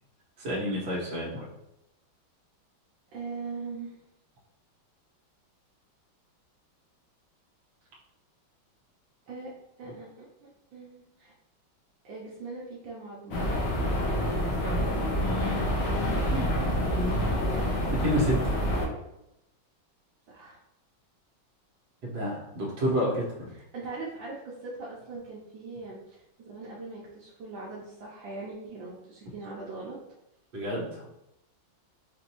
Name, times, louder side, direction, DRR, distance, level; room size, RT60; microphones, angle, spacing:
voice 1, 0.4-1.5 15.1-15.6 16.0-17.2 18.0-18.6 22.0-23.5 30.5-31.1, equal, 60° right, -5 dB, 1.7 m, -30 dB
voice 2, 3.1-4.0 9.3-9.5 9.8-11.3 12.0-13.4 20.3-20.6 23.5-30.0, right 3 dB, 75° right, -6 dB, 1.5 m, -41 dB
sound 1, 13.3-18.9, equal, 80° left, 1.6 m, -27 dB
5.1 x 2.6 x 2.9 m, 0.84 s
omnidirectional pair, 2.2 m